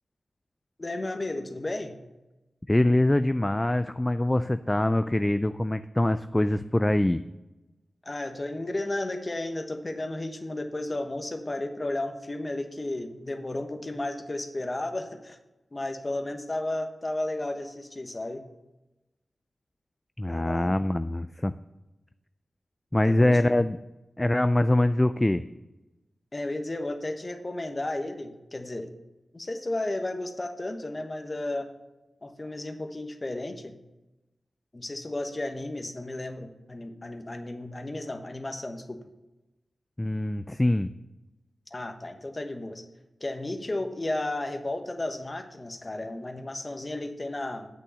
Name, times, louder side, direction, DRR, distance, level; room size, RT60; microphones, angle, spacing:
voice 1, 0.8-2.0 8.0-15.4 15.7-18.4 20.3-20.7 23.0-23.5 26.3-28.9 29.3-31.7 32.2-33.7 34.7-39.0 41.7-42.8 43.2-47.7, left 2 dB, 35° left, 6 dB, 1.1 m, -33 dB
voice 2, 2.7-7.2 20.2-21.6 22.9-23.8 24.2-25.4 40.0-40.9, left 1 dB, 15° left, 12 dB, 0.3 m, -24 dB
8.4 x 6.3 x 6.8 m, 1.0 s
cardioid pair, 60°, 0 cm